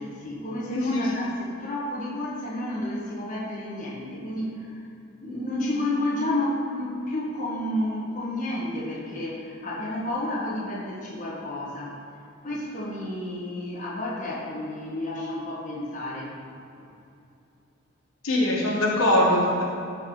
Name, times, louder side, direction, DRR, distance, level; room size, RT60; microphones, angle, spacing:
voice 1, 0.0-4.9 5.2-12.0 12.4-16.3 16.8-16.9, left 1 dB, 35° left, -6 dB, 1.7 m, -31 dB
voice 2, 0.7-1.0 18.2-19.6, left 1 dB, 85° left, -4 dB, 1.6 m, -22 dB
12.0 x 5.4 x 4.0 m, 2.6 s
head